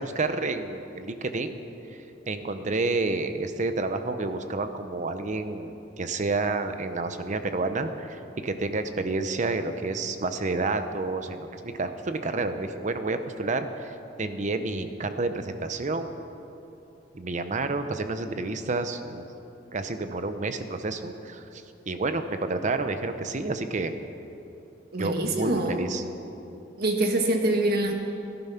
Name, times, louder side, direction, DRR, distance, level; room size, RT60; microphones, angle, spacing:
voice 1, 0.0-1.6 2.3-16.1 17.1-19.2 19.7-23.9 25.0-26.0, right 3 dB, 40° right, 9 dB, 0.8 m, -30 dB
voice 2, 24.9-25.8 26.8-27.9, right 1 dB, 55° right, 3 dB, 1.6 m, -25 dB
17.0 x 11.0 x 5.8 m, 2.8 s
head